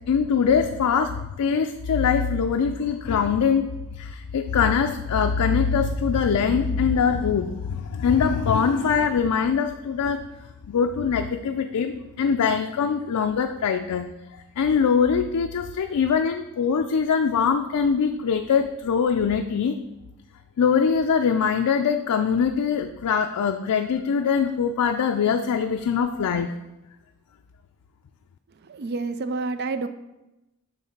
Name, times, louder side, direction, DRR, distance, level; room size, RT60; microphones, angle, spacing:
voice 1, 0.1-3.7 4.0-10.2 10.7-14.1 14.6-19.8 20.6-26.5, left 6 dB, 90° left, 5 dB, 0.4 m, -22 dB
voice 2, 28.7-29.9, right 3 dB, 45° right, 11 dB, 0.4 m, -28 dB
7.2 x 3.2 x 5.8 m, 0.96 s
head